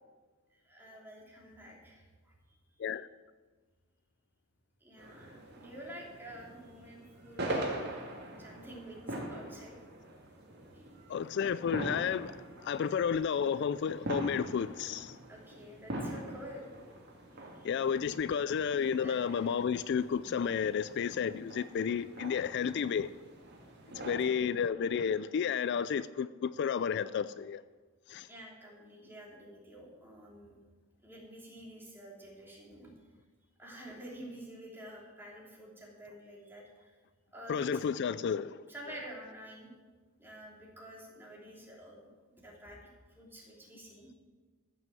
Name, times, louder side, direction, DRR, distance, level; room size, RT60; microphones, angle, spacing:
voice 1, 0.5-2.8 4.8-7.8 8.4-9.0 9.3-9.8 10.7-11.0 15.3-16.7 17.3-17.7 19.0-19.6 24.0-24.3 28.3-30.5 31.0-32.9 33.6-37.0 37.3-37.9 38.7-39.7 40.2-44.1, right 1 dB, 10° right, 3.1 m, -50 dB
sound 1, 5.0-24.2, right 1 dB, 55° right, 2.3 m, -43 dB
voice 2, 11.1-12.3 12.6-15.2 17.6-23.1 24.0-26.3 26.6-27.6 28.1-28.3 37.5-38.6, left 7 dB, 55° left, 0.3 m, -31 dB
14.0 x 6.3 x 7.7 m
head